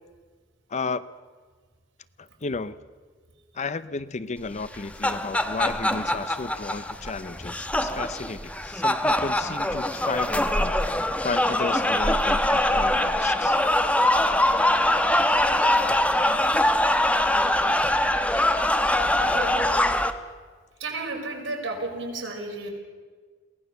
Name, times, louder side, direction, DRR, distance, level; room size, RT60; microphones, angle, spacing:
voice 1, 0.7-1.0 2.2-2.8 3.5-10.7 11.2-13.6, left 4 dB, 35° left, 15 dB, 0.6 m, -33 dB
sound 1, 4.6-20.1, left 1 dB, 5° left, 1.0 m, -23 dB
voice 2, 17.0-17.7 19.3-19.9 20.8-22.7, right 2 dB, 75° right, 0 dB, 5.0 m, -33 dB
23.0 x 17.0 x 6.8 m, 1.5 s
head